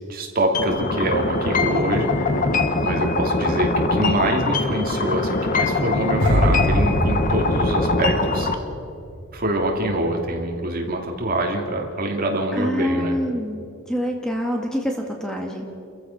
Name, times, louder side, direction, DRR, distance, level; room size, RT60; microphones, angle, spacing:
voice 1, 0.1-2.5 2.8-8.5 9.3-13.2, right 1 dB, 40° right, 1 dB, 2.6 m, -25 dB
sound 1, 0.5-8.5, left 3 dB, 40° left, 1.3 m, -22 dB
sound 2, 6.2-9.4 9.7-9.9, equal, 60° right, 2.4 m, -24 dB
voice 2, 12.5-15.7, equal, 5° left, 1 dB, 1.5 m, -26 dB
29.5 x 15.0 x 5.8 m, 2.6 s
head